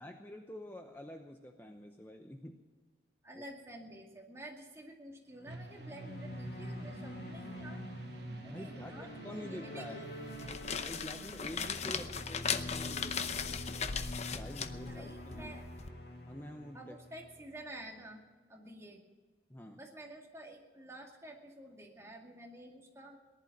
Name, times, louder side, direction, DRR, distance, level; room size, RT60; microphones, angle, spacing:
voice 1, 0.0-2.6 3.3-3.4 8.4-10.0 10.8-14.0 14.3-15.6 16.3-16.9 19.5-19.8, left 1 dB, 10° left, 4 dB, 0.8 m, -47 dB
voice 2, 3.2-7.8 8.4-10.1 14.8-15.6 16.7-18.2 18.5-19.0 19.7-23.2, right 1 dB, 15° right, 0 dB, 2.2 m, -50 dB
sound 1, 5.3-17.8, left 1 dB, 70° left, 2.4 m, -46 dB
sound 2, 5.5-10.5, right 2 dB, 75° right, 1.3 m, -49 dB
sound 3, 10.2-15.9, left 6 dB, 40° left, 0.7 m, -38 dB
18.5 x 11.0 x 6.0 m, 1.4 s
head